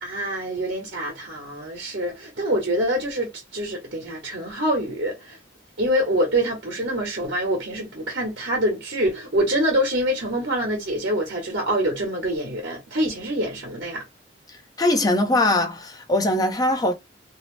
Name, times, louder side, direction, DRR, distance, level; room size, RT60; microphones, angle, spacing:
voice 1, 0.0-5.4 5.8-14.0, right 1 dB, 75° right, 1.0 m, -25 dB
voice 2, 14.8-16.9, left 1 dB, 20° left, 0.5 m, -21 dB
2.6 x 2.0 x 3.1 m
head